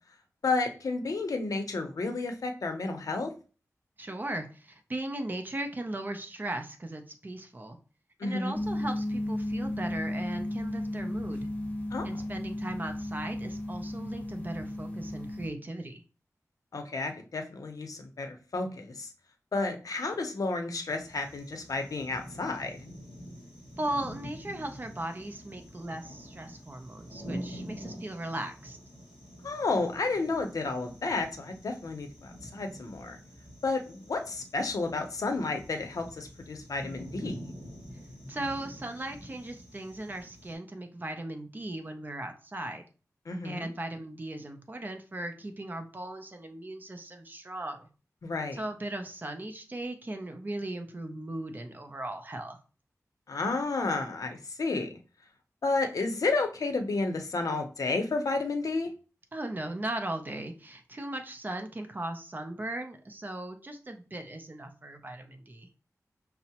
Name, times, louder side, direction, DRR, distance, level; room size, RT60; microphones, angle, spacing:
voice 1, 0.4-3.3 8.2-8.6 11.9-12.1 16.7-19.1 19.5-22.8 29.4-33.2 33.6-37.4 43.3-43.7 48.2-48.6 53.3-54.9 55.6-58.9, left 3 dB, 75° left, 5 dB, 0.6 m, -31 dB
voice 2, 4.0-7.8 8.2-11.5 12.0-16.0 23.8-28.8 38.3-42.8 43.4-47.9 48.5-52.6 59.3-65.7, right 1 dB, 30° right, 6 dB, 0.5 m, -38 dB
sound 1, 8.5-15.5, left 1 dB, 25° left, 0.7 m, -34 dB
sound 2, 20.9-40.5, equal, 10° right, 1.9 m, -46 dB
5.4 x 2.0 x 2.8 m, 0.36 s
wide cardioid pair, 80°, 6 cm